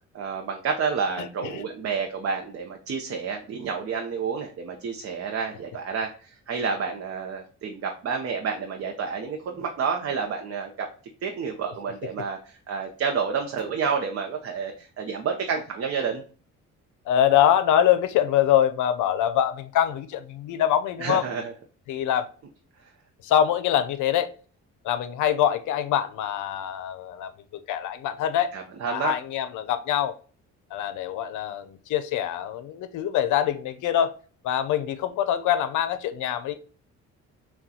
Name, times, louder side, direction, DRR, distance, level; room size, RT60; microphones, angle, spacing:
voice 1, 0.1-10.9 11.2-16.2 21.0-21.5 28.5-29.1, right 6 dB, 50° right, 3 dB, 0.7 m, -29 dB
voice 2, 1.2-1.6 17.1-21.2 21.9-22.3 23.2-24.3 24.8-27.3 27.7-28.5 28.9-30.1 30.7-34.1 34.4-36.5, left 10 dB, 80° left, 12 dB, 0.5 m, -24 dB
5.9 x 2.3 x 2.7 m, 0.40 s
cardioid pair, 90°, 30 cm